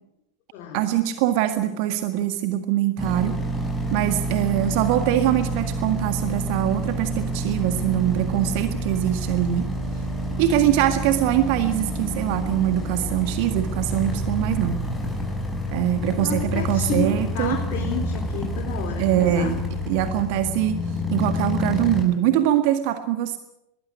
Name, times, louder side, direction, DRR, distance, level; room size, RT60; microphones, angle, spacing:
voice 1, 0.7-3.3 3.9-9.7 10.4-14.8 15.7-17.6 19.0-19.6 19.9-20.8 21.1-23.4, right 12 dB, 45° right, 9 dB, 1.8 m, -23 dB
sound 1, 3.0-22.0, equal, 5° left, 6.2 m, -28 dB
voice 2, 16.2-19.6, left 6 dB, 40° left, 0 dB, 4.0 m, -31 dB
22.0 x 16.5 x 9.6 m, 0.86 s
figure-of-eight pair, 90°, 0 cm